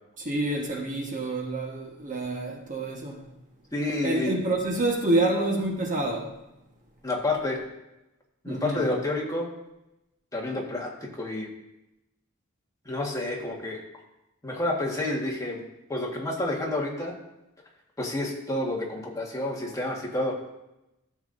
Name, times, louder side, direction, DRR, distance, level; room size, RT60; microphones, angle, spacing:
voice 1, 0.2-3.3 4.0-6.4 8.5-8.9, right 2 dB, 40° right, 1.3 m, -28 dB
voice 2, 3.7-4.4 7.0-7.6 8.4-9.5 10.3-11.5 12.8-13.8 14.4-15.6 15.9-17.1 18.0-20.4, left 2 dB, 15° left, 1.6 m, -29 dB
14.0 x 7.2 x 2.6 m
head